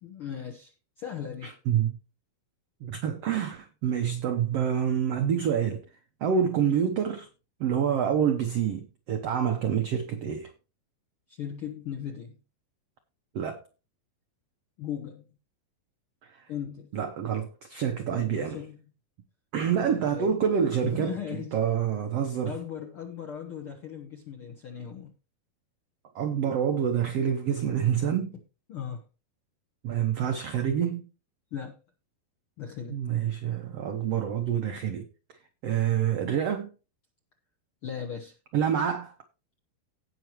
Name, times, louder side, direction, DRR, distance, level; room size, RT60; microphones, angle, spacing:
voice 1, 0.0-0.7 1.0-1.5 11.3-12.3 14.8-15.3 16.5-16.9 18.1-18.8 19.7-20.4 20.8-21.6 22.4-25.1 28.7-29.0 31.5-31.8 32.6-33.0 37.8-38.3, left 8 dB, 70° left, 1.3 m, -37 dB
voice 2, 1.4-2.0 2.8-5.8 6.2-7.3 7.6-10.5 13.3-13.6 16.3-16.5 16.9-18.6 19.5-22.6 26.1-28.3 29.8-31.0 32.9-35.1 35.6-36.7 38.5-39.1, right 8 dB, 80° right, 1.4 m, -27 dB
17.5 x 6.0 x 3.0 m
omnidirectional pair, 4.2 m